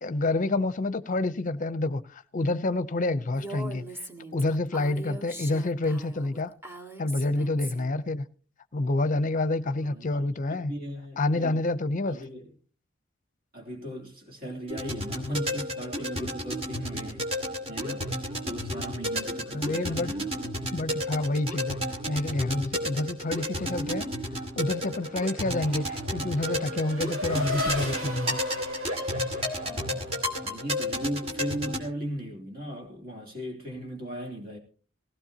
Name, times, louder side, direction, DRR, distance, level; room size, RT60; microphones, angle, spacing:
voice 1, 0.0-3.9 4.3-6.5 7.0-8.2 8.7-10.7 11.2-12.2 19.5-20.2 20.7-21.8 22.1-24.1 24.6-28.4, left 2 dB, 40° left, 0.7 m, -28 dB
Female speech woman speaking, 3.3-8.0, right 1 dB, 10° right, 1.8 m, -41 dB
voice 2, 9.8-11.6 12.1-12.5 13.5-17.4 17.7-20.6 30.4-34.6, equal, 45° right, 3.1 m, -37 dB
sound 1, 14.7-31.8, equal, 30° right, 2.2 m, -32 dB
Race car auto racing / Accelerating revving vroom, 24.6-30.7, left 1 dB, 80° right, 4.3 m, -35 dB
18.5 x 16.0 x 2.9 m
head